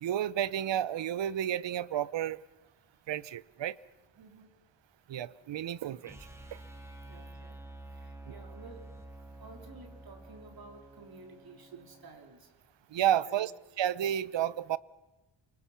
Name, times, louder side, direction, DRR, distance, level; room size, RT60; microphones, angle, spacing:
voice 1, 0.0-2.4 3.1-3.8 5.1-6.2 12.9-13.5 13.8-14.8, right 11 dB, 70° right, 0.8 m, -31 dB
voice 2, 4.2-4.6 7.0-7.6 7.9-8.9 9.4-12.5 13.1-13.9, right 3 dB, 50° right, 3.6 m, -53 dB
sound 1, 6.0-12.1, right 1 dB, 5° right, 2.2 m, -49 dB
28.5 x 24.0 x 5.8 m
wide cardioid pair, 155°, 46 cm